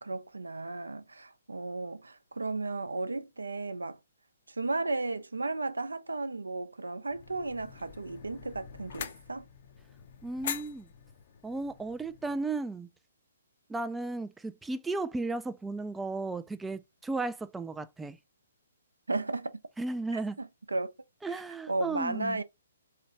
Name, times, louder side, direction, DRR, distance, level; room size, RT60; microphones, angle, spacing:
voice 1, 0.0-4.0 4.5-9.4 19.1-19.6 20.1-20.9 21.7-22.4, right 3 dB, 85° right, 0.6 m, -34 dB
sound 1, 7.1-12.5, left 8 dB, 50° left, 0.6 m, -44 dB
voice 2, 10.2-10.9 11.4-12.9 13.7-18.2 19.8-20.4 21.2-22.4, right 3 dB, 5° right, 0.3 m, -35 dB
3.9 x 3.3 x 3.9 m
figure-of-eight pair, 130°, 0 cm